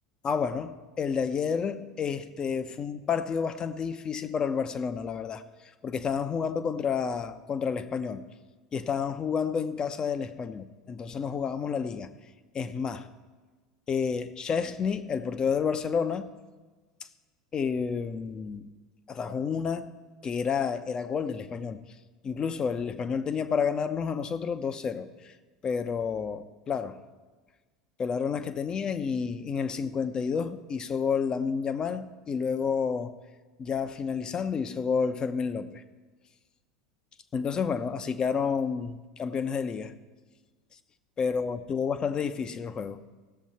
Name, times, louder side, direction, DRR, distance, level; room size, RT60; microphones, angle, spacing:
voice 1, 0.2-5.4 5.8-8.3 8.7-12.1 12.5-13.1 13.9-16.3 17.5-18.7 19.1-19.9 20.2-21.8 22.2-25.3 25.6-27.0 28.0-33.1 33.6-35.8 37.3-39.9 41.2-43.0, left 6 dB, 30° left, 0.8 m, -30 dB
17.0 x 7.2 x 4.2 m
figure-of-eight pair, 75°, 3 cm